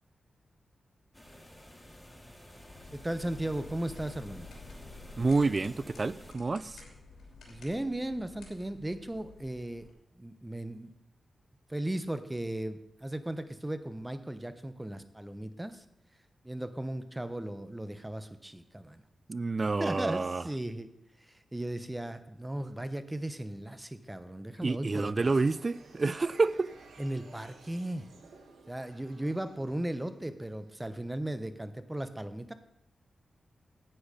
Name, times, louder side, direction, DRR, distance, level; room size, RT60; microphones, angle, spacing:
sound 1, 1.1-6.3, equal, 10° left, 2.0 m, -51 dB
sound 2, 2.6-9.9, left 3 dB, 85° left, 2.9 m, -51 dB
voice 1, 2.9-4.5 7.5-9.9 10.1-10.9 11.7-15.8 16.4-19.0 19.8-20.9 21.3-25.3 27.0-28.1 28.7-32.5, right 1 dB, 15° right, 0.9 m, -36 dB
voice 2, 5.2-6.8 19.3-20.5 24.6-26.7, right 3 dB, 45° right, 0.4 m, -28 dB
sound 3, 25.2-30.8, right 4 dB, 80° right, 1.8 m, -56 dB
9.9 x 8.8 x 5.1 m
cardioid pair, 50°, 0 cm